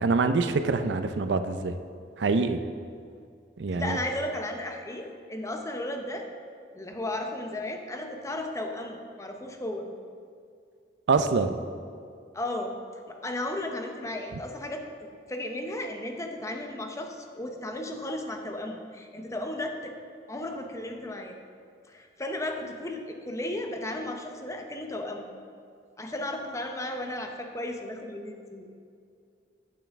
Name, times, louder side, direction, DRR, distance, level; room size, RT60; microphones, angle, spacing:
voice 1, 0.0-1.8 2.2-2.6 3.6-4.0 11.1-11.6, right 4 dB, 85° right, 9 dB, 0.5 m, -25 dB
voice 2, 3.8-6.3 6.7-9.9 12.3-12.7 13.1-14.8 15.3-20.0 20.3-21.4 21.9-25.3 26.0-28.7, left 1 dB, 20° left, 4 dB, 0.7 m, -34 dB
8.8 x 8.5 x 3.5 m, 2.3 s
head